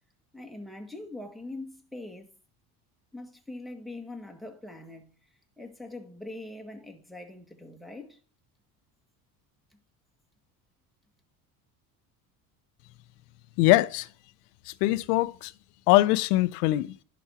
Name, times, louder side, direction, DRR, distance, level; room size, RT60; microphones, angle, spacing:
voice 1, 0.3-2.3 3.1-5.1 5.6-8.2, left 2 dB, ahead, 1.7 m, -42 dB
voice 2, 13.6-14.1 14.7-15.5 15.9-16.9, left 18 dB, 75° left, 0.7 m, -22 dB
11.0 x 4.3 x 5.8 m
hypercardioid pair, 75°, 47 cm